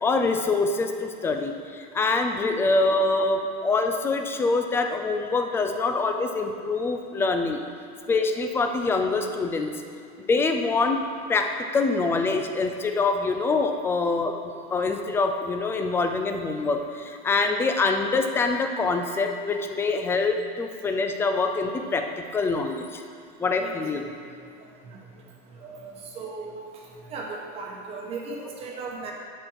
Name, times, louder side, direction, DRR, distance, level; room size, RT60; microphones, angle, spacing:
voice 1, 0.0-7.6 8.1-9.7 10.3-11.0 11.3-23.0 23.4-24.0, left 3 dB, 10° left, 5 dB, 0.3 m, -25 dB
voice 2, 25.6-26.7 27.1-29.1, right 3 dB, 30° right, 0 dB, 1.1 m, -36 dB
11.0 x 4.3 x 4.6 m, 2.3 s
cardioid pair, 170°, 21 cm